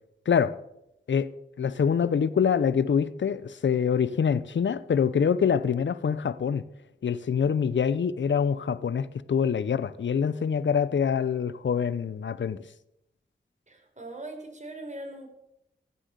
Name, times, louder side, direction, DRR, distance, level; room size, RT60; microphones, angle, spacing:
voice 1, 1.6-6.6 7.0-12.6, left 7 dB, 70° left, 0.7 m, -25 dB
voice 2, 13.7-15.3, right 1 dB, 40° right, 4.2 m, -40 dB
15.5 x 7.8 x 6.7 m
cardioid pair, 45°, 20 cm